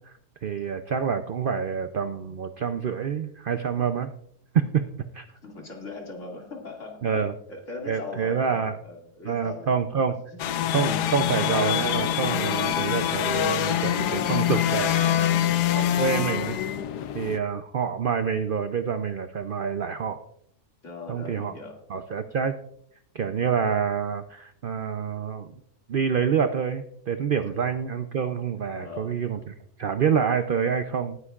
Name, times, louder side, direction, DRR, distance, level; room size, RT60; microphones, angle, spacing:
voice 1, 0.4-4.1 4.5-4.8 5.1-5.3 7.0-7.3 7.9-8.8 9.2-10.2 10.7-15.4 15.8-16.6 17.1-20.2 21.1-21.5 21.9-22.6 23.1-25.5 25.9-31.2, right 7 dB, 70° right, 9 dB, 0.5 m, -27 dB
voice 2, 5.4-10.7 20.8-21.8 28.7-29.2, left 3 dB, 50° left, 0 dB, 2.6 m, -40 dB
sound 1, 10.4-17.4, left 10 dB, 90° left, 1.3 m, -25 dB
19.5 x 9.7 x 2.4 m, 0.68 s
omnidirectional pair, 1.7 m